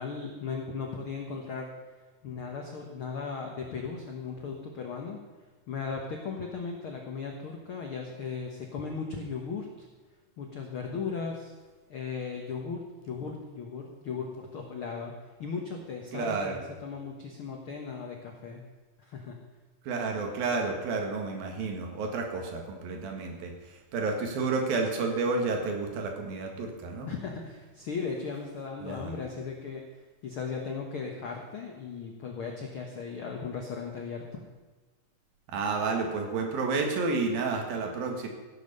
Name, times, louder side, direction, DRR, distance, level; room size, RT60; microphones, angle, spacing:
voice 1, 0.0-1.7 2.2-5.2 5.7-9.9 10.4-11.5 11.9-15.1 15.4-18.6 19.0-19.4 27.1-29.8 30.2-34.4, left 5 dB, 70° left, 2 dB, 1.2 m, -37 dB
voice 2, 16.1-16.6 19.9-27.1 28.8-29.1 35.5-38.3, right 4 dB, 80° right, 3 dB, 3.5 m, -30 dB
16.0 x 7.2 x 6.7 m, 1.3 s
omnidirectional pair, 4.2 m